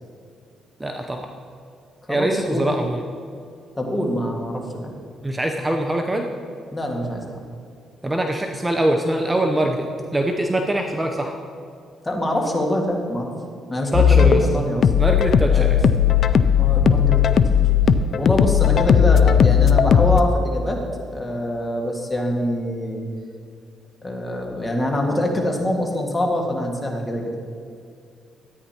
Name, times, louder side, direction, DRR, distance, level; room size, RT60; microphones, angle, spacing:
voice 1, 0.8-1.3 2.1-3.0 5.2-6.3 8.0-9.8 10.1-11.3 13.9-14.5 15.0-15.8, right 1 dB, 15° right, 3 dB, 0.7 m, -23 dB
voice 2, 2.1-2.6 3.8-4.9 6.7-7.4 12.0-13.3 13.7-14.8 15.5-15.7 16.6-17.2 18.2-20.8 21.1-23.1 24.0-27.3, left 1 dB, 20° left, 0 dB, 1.7 m, -24 dB
sound 1, 13.9-20.2, left 8 dB, 60° left, 0.3 m, -16 dB
13.0 x 9.4 x 2.9 m, 2.4 s
cardioid pair, 90°, 0 cm